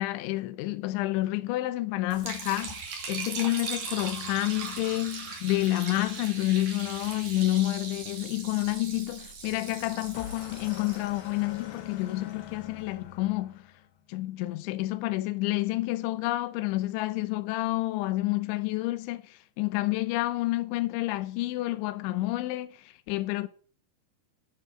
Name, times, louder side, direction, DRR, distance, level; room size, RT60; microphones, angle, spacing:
voice 1, 0.0-2.7 3.1-13.6 14.1-22.7 23.1-23.5, left 17 dB, 90° left, 3.2 m, -29 dB
Liquid, 2.1-12.3, right 4 dB, 45° right, 3.4 m, -40 dB
sound 1, 9.5-14.0, left 11 dB, 70° left, 2.6 m, -44 dB
10.5 x 7.8 x 7.6 m
omnidirectional pair, 5.2 m